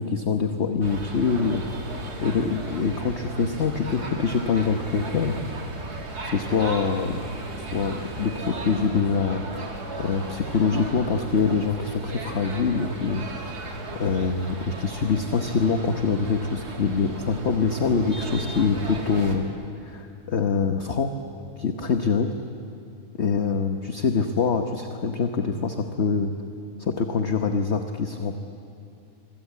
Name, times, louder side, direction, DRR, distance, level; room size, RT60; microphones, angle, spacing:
voice 1, 0.0-1.6 2.2-5.4 6.2-7.2 7.7-9.4 10.0-13.3 14.0-19.5 19.8-21.1 21.6-22.3 23.2-26.3 26.8-28.5, left 5 dB, 50° left, 6 dB, 1.3 m, -24 dB
sound 1, 0.8-19.4, right 2 dB, 90° right, 3.1 m, -35 dB
25.5 x 25.0 x 8.5 m, 2.7 s
omnidirectional pair, 1.6 m